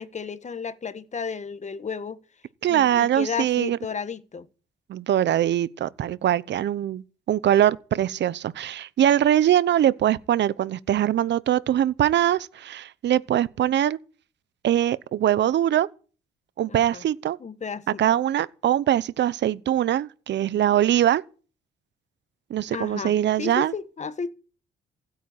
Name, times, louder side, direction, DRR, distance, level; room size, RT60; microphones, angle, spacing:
voice 1, 0.0-2.2 2.6-4.5 16.7-17.0 17.4-17.8 22.7-24.3, left 6 dB, 35° left, 1.5 m, -33 dB
voice 2, 2.6-3.8 4.9-14.0 14.6-15.9 16.6-17.4 18.0-21.2 22.5-23.7, right 11 dB, 60° right, 0.9 m, -22 dB
16.0 x 9.1 x 8.7 m
cardioid pair, 90°, 20 cm